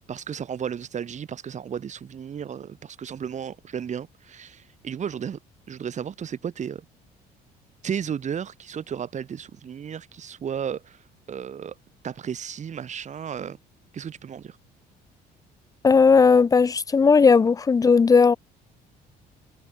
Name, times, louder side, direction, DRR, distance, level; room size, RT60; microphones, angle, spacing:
voice 1, 0.1-5.4 5.7-6.8 7.8-11.8 12.0-13.6 13.9-14.6, right 8 dB, 45° right, 7.8 m, -34 dB
voice 2, 15.8-18.4, left 5 dB, 20° left, 0.5 m, -16 dB
cardioid pair, 110°, 17 cm